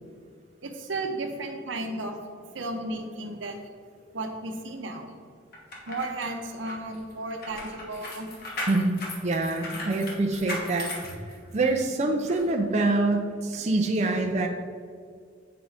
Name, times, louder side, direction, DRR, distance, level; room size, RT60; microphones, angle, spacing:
voice 1, 0.6-2.2 2.5-3.6 4.1-5.2 5.9-8.3 11.1-11.2, right 2 dB, 85° right, 4 dB, 0.9 m, -34 dB
sound 1, 5.5-11.8 12.3-12.4, left 1 dB, 55° left, 1.3 m, -38 dB
voice 2, 8.7-10.9 11.5-14.5, right 2 dB, 35° right, 3 dB, 0.5 m, -25 dB
7.6 x 4.5 x 4.0 m, 2.1 s
head